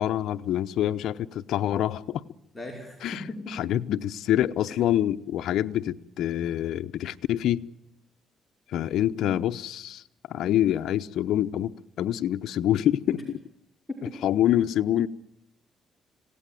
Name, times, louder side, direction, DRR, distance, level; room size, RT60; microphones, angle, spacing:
voice 1, 0.0-2.2 3.0-7.7 8.7-10.0 10.3-13.2 14.2-15.1, left 11 dB, 80° left, 0.9 m, -26 dB
voice 2, 2.5-3.6 4.7-4.8 13.1-13.2 13.9-14.0, left 2 dB, 15° left, 5.4 m, -37 dB
26.0 x 17.5 x 9.2 m
cardioid pair, 90°, 0 cm